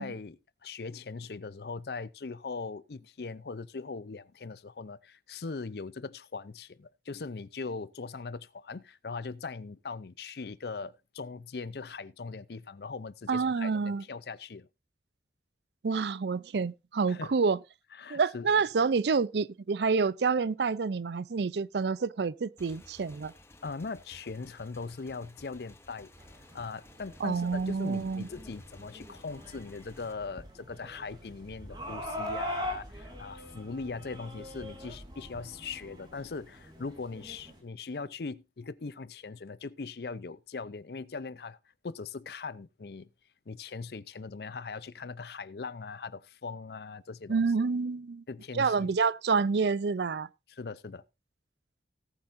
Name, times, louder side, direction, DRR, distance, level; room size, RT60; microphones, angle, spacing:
voice 1, 0.0-14.7 17.1-17.3 17.9-18.5 23.6-26.1 26.5-41.6 41.8-43.1 43.5-47.4 48.3-48.9 50.5-51.0, left 4 dB, 65° left, 0.6 m, -40 dB
voice 2, 13.3-14.0 15.8-17.6 18.1-23.3 27.2-28.3 47.3-48.2 48.5-50.3, right 5 dB, 75° right, 0.5 m, -28 dB
Motorcycle / Engine, 22.6-30.1, left 1 dB, 15° left, 1.1 m, -55 dB
sound 1, 26.2-37.6, equal, 25° right, 3.3 m, -43 dB
18.0 x 8.8 x 2.6 m
head